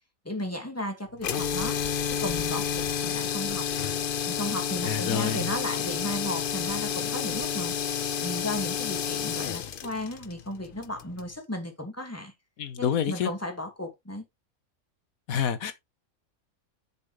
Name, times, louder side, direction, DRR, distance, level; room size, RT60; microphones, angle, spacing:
voice 1, 0.2-1.8 2.1-3.7 4.3-7.7 8.2-12.3 12.8-14.2, left 1 dB, 10° left, 2.4 m, -35 dB
sound 1, 1.2-11.3, left 8 dB, 50° left, 0.7 m, -30 dB
voice 2, 4.8-5.4 12.6-13.3 15.3-15.7, left 8 dB, 85° left, 1.4 m, -27 dB
7.5 x 6.8 x 3.4 m
omnidirectional pair, 1.5 m